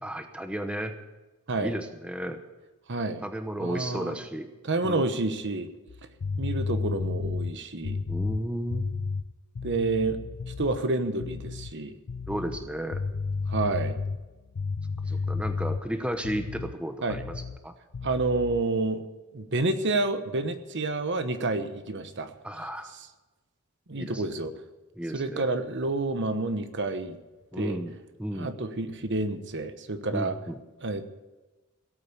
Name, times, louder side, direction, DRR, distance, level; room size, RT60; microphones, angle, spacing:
voice 1, 0.0-0.9 1.6-2.4 3.2-4.5 4.8-5.1 8.1-8.9 12.3-13.0 15.0-17.3 17.6-17.7 22.4-22.9 23.9-24.2 25.0-25.5 27.5-27.9 28.2-28.6 30.1-30.6, equal, 5° right, 7 dB, 0.9 m, -33 dB
voice 2, 2.9-3.2 3.6-4.2 4.6-5.7 6.4-8.0 9.6-10.2 10.6-11.9 13.5-13.9 17.0-17.2 18.0-19.0 19.3-22.3 23.9-24.5 25.1-27.2 27.5-27.8 28.3-30.3 30.8-31.1, right 2 dB, 55° right, 9 dB, 1.1 m, -29 dB
sound 1, 5.9-10.8 11.2-11.8 12.1-16.8 17.1-17.7 17.9-18.6, left 4 dB, 60° left, 0.5 m, -32 dB
17.5 x 8.7 x 8.1 m, 1.2 s
head